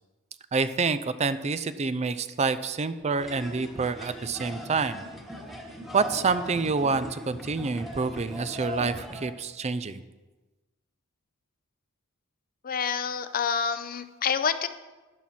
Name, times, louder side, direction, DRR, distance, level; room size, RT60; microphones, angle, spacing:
voice 1, 0.5-5.0 5.9-10.0, right 4 dB, 30° right, 13 dB, 0.4 m, -27 dB
sound 1, 3.2-9.3, left 1 dB, ahead, 1.4 m, -39 dB
voice 2, 12.6-14.7, left 6 dB, 40° left, 11 dB, 0.6 m, -28 dB
12.0 x 10.5 x 4.3 m, 1.2 s
head